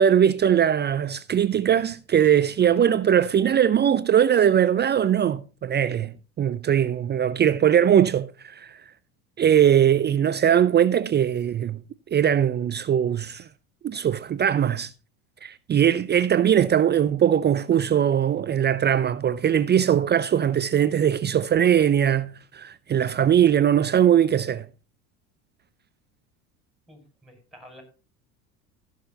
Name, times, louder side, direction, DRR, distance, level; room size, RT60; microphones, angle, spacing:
voice 1, 0.0-8.8 9.4-11.8 12.1-13.4 13.8-14.9 15.4-24.7, right 9 dB, 25° right, 0.5 m, -20 dB
voice 2, 26.9-27.8, equal, ahead, 5.5 m, -49 dB
15.0 x 6.6 x 3.8 m
hypercardioid pair, 80°, 43 cm